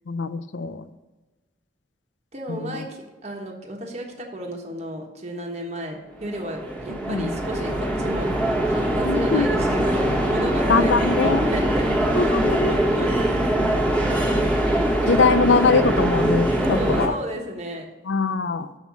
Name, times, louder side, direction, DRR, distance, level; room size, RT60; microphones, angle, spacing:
voice 1, 0.1-0.8 2.5-2.9 7.1-7.3 9.1-9.5 10.7-11.5 12.1-13.2 15.1-17.2 18.1-18.7, left 4 dB, 80° left, 12 dB, 0.5 m, -22 dB
voice 2, 2.3-8.3 8.6-12.0 12.2-12.4 12.7-13.1 16.6-17.9, equal, 35° right, 1 dB, 1.2 m, -33 dB
sound 1, 6.2-17.1, right 1 dB, 5° left, 1.2 m, -22 dB
7.2 x 5.6 x 6.1 m, 1.2 s
head